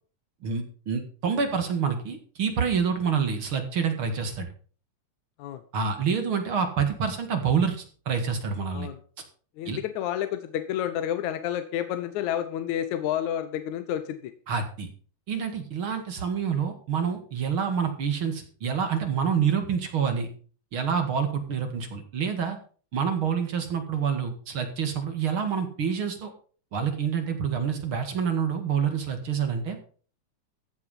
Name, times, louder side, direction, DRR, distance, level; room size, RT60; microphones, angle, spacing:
voice 1, 0.4-4.5 5.7-8.9 9.7-9.8 14.5-14.9 15.3-20.3 20.7-22.6 22.9-26.3 26.7-29.8, right 6 dB, 50° right, 6 dB, 2.5 m, -27 dB
voice 2, 9.6-14.3, left 11 dB, 75° left, 10 dB, 2.3 m, -30 dB
15.0 x 8.5 x 5.5 m, 0.41 s
omnidirectional pair, 3.4 m